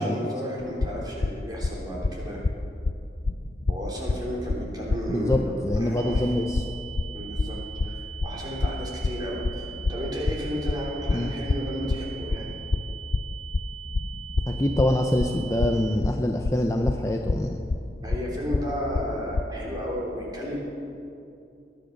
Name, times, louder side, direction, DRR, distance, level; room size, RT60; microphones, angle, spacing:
voice 1, 0.0-2.4 3.7-6.2 7.1-12.5 18.0-20.6, equal, 25° right, -4 dB, 3.3 m, -33 dB
sound 1, 0.6-19.4, left 3 dB, 60° left, 0.5 m, -27 dB
voice 2, 5.1-6.7 11.1-11.3 14.5-17.6, left 1 dB, 15° left, 3 dB, 0.6 m, -25 dB
sound 2, 6.0-16.0, right 11 dB, 80° right, 0.7 m, -42 dB
20.0 x 10.0 x 6.5 m, 2.6 s
head